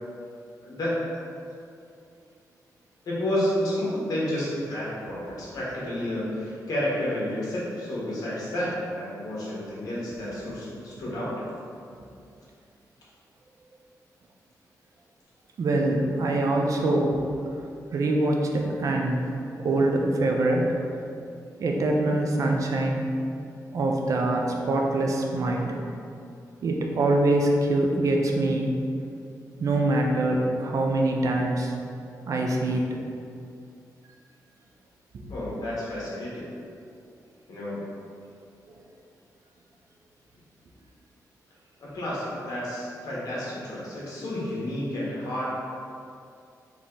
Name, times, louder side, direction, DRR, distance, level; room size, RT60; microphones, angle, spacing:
voice 1, 0.6-1.0 3.0-11.4 35.3-36.5 37.5-37.9 41.8-45.6, left 1 dB, 70° left, -7 dB, 1.4 m, -30 dB
voice 2, 15.6-17.2 17.9-19.3 19.6-20.8 21.6-23.1 23.7-25.7 26.6-28.7 29.6-31.7 32.3-33.0, right 2 dB, 55° right, 1 dB, 0.5 m, -24 dB
4.0 x 3.0 x 3.8 m, 2.5 s
wide cardioid pair, 140°, 7 cm